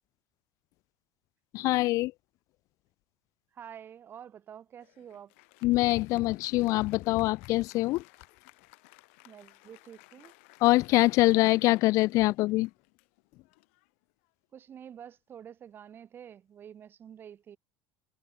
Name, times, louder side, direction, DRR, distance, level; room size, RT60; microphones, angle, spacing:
voice 1, 1.5-2.1 5.6-8.0 10.6-12.7, left 19 dB, 55° left, 0.3 m, -24 dB
voice 2, 3.5-5.3 9.2-10.3 14.5-17.6, right 9 dB, 35° right, 1.3 m, -48 dB
Applause, 4.8-14.6, left 28 dB, 80° left, 4.0 m, -59 dB
supercardioid pair, 130°, 7 cm